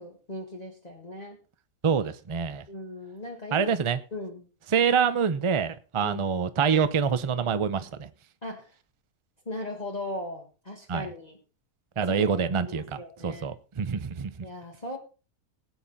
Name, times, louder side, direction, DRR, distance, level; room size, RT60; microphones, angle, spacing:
voice 1, 0.0-1.4 2.7-3.7 4.1-4.5 6.0-6.2 8.4-8.7 9.5-11.4 12.0-12.3 12.6-13.5 14.4-15.0, left 2 dB, 25° left, -1 dB, 1.8 m, -38 dB
voice 2, 1.8-2.7 3.5-4.0 4.7-8.1 10.9-11.1 12.0-13.0 13.2-14.5, right 6 dB, 35° right, 12 dB, 0.5 m, -26 dB
18.0 x 8.1 x 4.2 m, 0.36 s
omnidirectional pair, 1.7 m